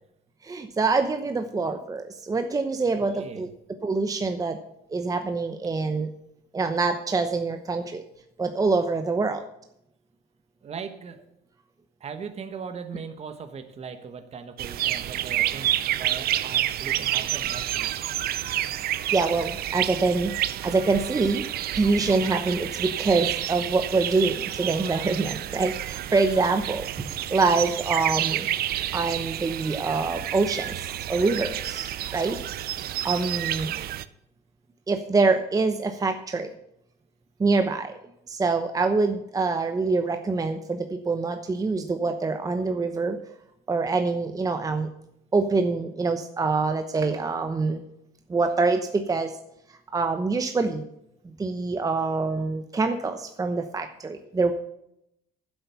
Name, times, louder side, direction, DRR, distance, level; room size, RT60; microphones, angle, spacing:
voice 1, 0.4-3.5 3.8-4.6 4.9-6.1 6.5-8.0 8.4-9.4 19.1-21.4 21.7-28.5 28.9-30.7 31.1-32.4 33.0-33.7 34.9-36.5 37.4-37.9 38.3-43.2 43.7-44.9 45.3-47.8 48.3-49.3 49.9-50.8 51.4-54.5, right 3 dB, 20° right, 7 dB, 0.9 m, -25 dB
voice 2, 3.0-3.5 10.6-11.2 12.0-17.9 32.3-32.5, right 6 dB, 40° right, 8 dB, 1.3 m, -39 dB
sound 1, 14.6-34.0, right 13 dB, 65° right, 0.6 m, -29 dB
10.0 x 8.1 x 7.0 m, 0.77 s
cardioid pair, 110°, 17 cm